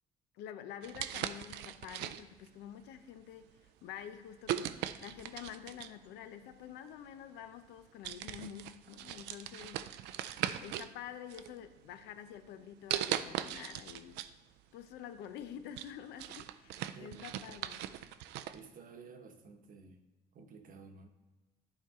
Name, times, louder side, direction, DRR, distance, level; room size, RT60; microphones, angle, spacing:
voice 1, 0.3-10.3 10.6-14.3 14.7-17.9, left 9 dB, 85° left, 10 dB, 0.6 m, -48 dB
sound 1, 0.8-2.5 3.2-3.4 4.5-6.0 7.1-7.2 7.7-10.9 11.3-12.0 12.9-14.3 14.7-14.8 15.3-18.6, right 12 dB, 85° right, 0.4 m, -39 dB
voice 2, 16.9-17.3 18.5-20.0 20.3-21.1, right 4 dB, 55° right, 6 dB, 1.0 m, -53 dB
11.0 x 4.5 x 3.7 m, 1.3 s
cardioid pair, 110°, 17 cm